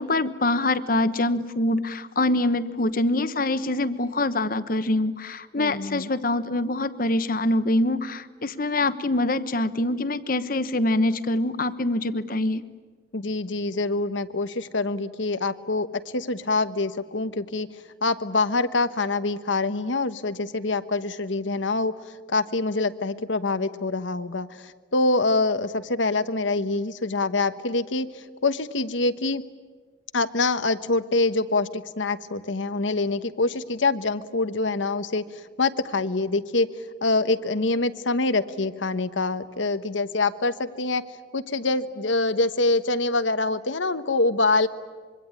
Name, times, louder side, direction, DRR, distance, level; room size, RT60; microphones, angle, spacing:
voice 1, 0.0-12.6, left 2 dB, 50° left, 12 dB, 1.1 m, -24 dB
voice 2, 5.6-6.1 13.1-29.4 30.1-41.0 41.3-44.7, left 3 dB, 85° left, 11 dB, 1.2 m, -25 dB
25.5 x 23.5 x 9.7 m, 1.5 s
head